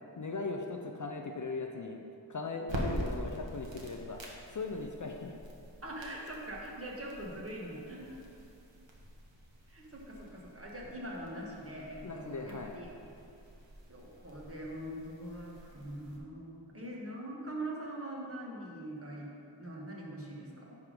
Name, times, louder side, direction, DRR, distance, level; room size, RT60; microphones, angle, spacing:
voice 1, 0.2-2.0 2.3-4.2 4.5-5.3 12.0-12.8, left 3 dB, 45° left, 3 dB, 0.5 m, -38 dB
sound 1, 2.6-16.2, right 1 dB, 75° right, 1.2 m, -45 dB
voice 2, 5.8-8.2 9.7-13.1 13.9-20.8, right 1 dB, 30° right, -3 dB, 1.4 m, -43 dB
10.5 x 3.6 x 5.0 m, 2.7 s
wide cardioid pair, 90°, 45 cm